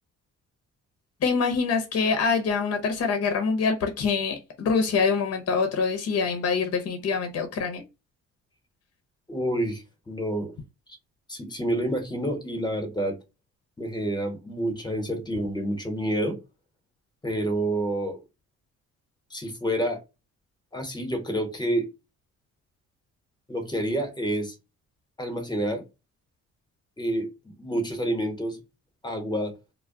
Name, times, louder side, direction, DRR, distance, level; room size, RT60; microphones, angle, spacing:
voice 1, 1.2-7.8, left 5 dB, 55° left, 0.7 m, -25 dB
voice 2, 9.3-10.6 11.3-13.2 13.8-16.4 17.2-18.2 19.3-20.0 20.7-21.9 23.5-24.5 25.2-25.8 27.0-28.6 29.0-29.5, right 1 dB, 15° left, 0.9 m, -28 dB
2.2 x 2.1 x 3.6 m
cardioid pair, 90°, 30 cm